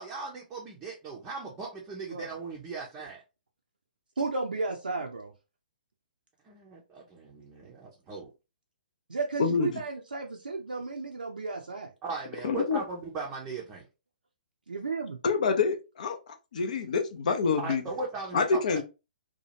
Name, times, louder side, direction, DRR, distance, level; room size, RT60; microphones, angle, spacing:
voice 1, 0.0-3.2 6.4-8.3 12.0-13.8 17.6-18.6, right 4 dB, 15° right, 0.6 m, -38 dB
voice 2, 4.2-5.3 9.1-11.9 14.7-15.2, right 4 dB, 70° right, 0.5 m, -33 dB
voice 3, 9.4-9.8 12.4-12.8 15.2-16.2 16.5-17.8 18.3-18.8, left 5 dB, 50° left, 0.6 m, -26 dB
2.8 x 2.3 x 2.8 m
figure-of-eight pair, 125°, 5 cm